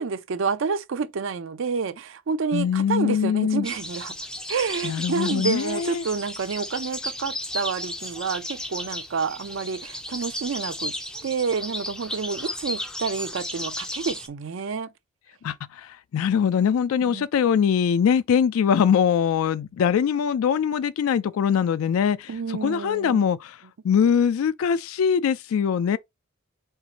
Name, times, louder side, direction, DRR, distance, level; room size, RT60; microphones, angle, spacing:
voice 1, 0.0-4.1 4.5-10.9 11.2-14.9 17.1-17.3 22.3-23.2, right 5 dB, 60° right, 0.5 m, -29 dB
voice 2, 2.5-3.7 4.8-6.0 15.4-23.6 23.8-26.0, left 7 dB, 75° left, 0.3 m, -22 dB
sound 1, 3.6-14.3, left 1 dB, 5° left, 0.4 m, -34 dB
4.4 x 2.5 x 4.0 m
head